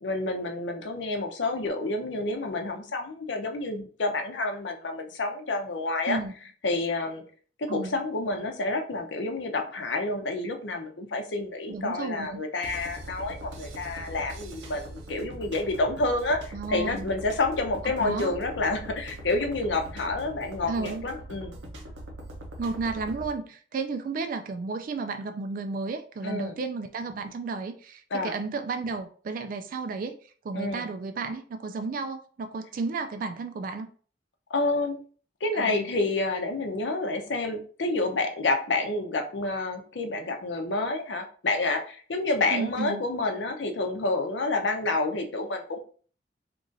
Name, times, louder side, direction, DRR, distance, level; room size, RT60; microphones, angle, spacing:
voice 1, 0.0-6.2 6.6-7.2 7.6-21.5 26.2-26.5 28.1-28.3 30.5-30.8 34.5-35.0 35.4-45.8, left 2 dB, 80° left, 5 dB, 0.7 m, -29 dB
voice 2, 11.7-12.4 16.5-17.1 18.0-18.3 20.7-21.1 22.6-33.9 35.5-35.9 42.5-43.0, right 4 dB, 50° right, 8 dB, 0.3 m, -33 dB
sound 1, 12.6-23.3, right 1 dB, 80° right, 0.8 m, -41 dB
3.0 x 2.5 x 3.8 m, 0.43 s
head